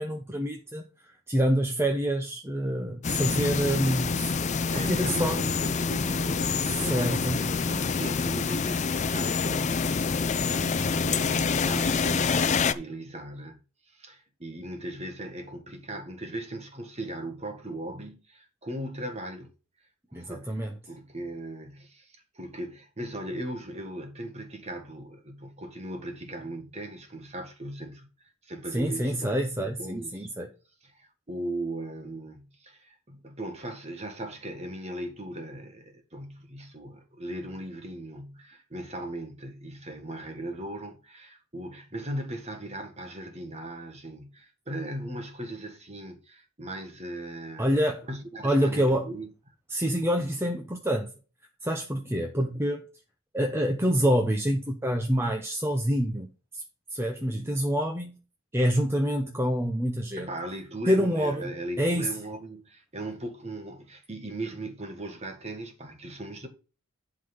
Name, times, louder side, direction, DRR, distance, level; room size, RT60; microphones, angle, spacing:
voice 1, 0.0-4.2 4.7-5.5 6.7-7.5 20.1-20.7 28.7-30.5 47.6-48.0 48.4-49.1 49.7-51.1 51.6-52.8 53.3-56.3 56.5-56.6 56.9-58.2 58.5-60.3 60.9-61.5 61.8-62.1, equal, 10° right, 0.8 m, -27 dB
sound 1, 3.0-12.7, left 5 dB, 30° left, 0.4 m, -27 dB
voice 2, 4.7-13.6 13.9-19.5 20.1-28.1 28.4-30.3 30.8-47.7 48.1-49.3 60.1-66.5, right 1 dB, 30° right, 1.7 m, -38 dB
11.0 x 3.9 x 5.4 m
head